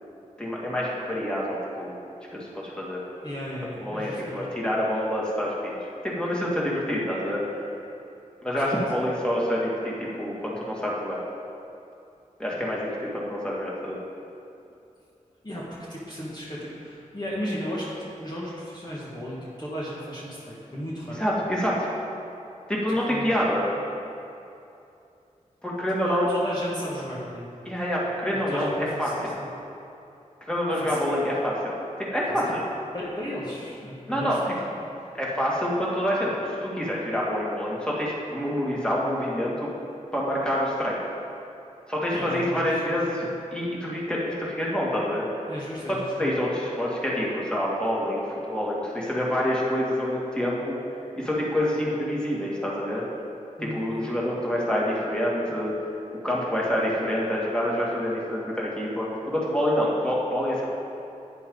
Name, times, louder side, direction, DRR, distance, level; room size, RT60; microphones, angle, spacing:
voice 1, 0.4-2.0 2.3-3.0 3.8-7.4 8.4-11.2 12.4-14.0 21.2-21.9 22.7-23.6 25.6-26.3 27.6-29.3 30.5-31.8 32.1-32.6 34.1-34.4 35.1-39.7 40.1-41.0 41.9-45.2 46.2-50.8 51.2-53.0 53.6-55.8 56.2-60.7, equal, 5° left, -5 dB, 2.5 m, -27 dB
voice 2, 3.2-4.5 8.6-8.9 15.4-21.2 22.9-23.3 26.1-27.5 28.3-29.5 30.7-31.0 32.3-32.4 32.9-34.5 42.1-43.0 45.5-46.3 53.6-53.9, equal, 30° left, -7 dB, 2.0 m, -35 dB
10.5 x 9.5 x 4.1 m, 2.7 s
cardioid pair, 45°, 14 cm